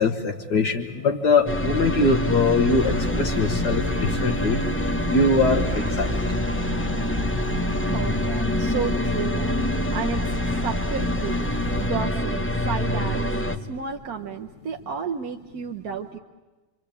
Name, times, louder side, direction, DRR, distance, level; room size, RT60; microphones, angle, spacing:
voice 1, 0.0-4.6 5.1-6.2, left 3 dB, 65° left, 3 dB, 1.8 m, -22 dB
sound 1, 1.5-13.6, left 1 dB, 15° left, 0.5 m, -26 dB
Insect / Frog, 2.7-11.9, equal, 30° right, 2.4 m, -33 dB
voice 2, 7.8-11.4 11.8-13.3 13.7-16.2, right 6 dB, 55° right, 2 dB, 1.4 m, -32 dB
26.5 x 24.5 x 8.4 m, 1.2 s
omnidirectional pair, 2.0 m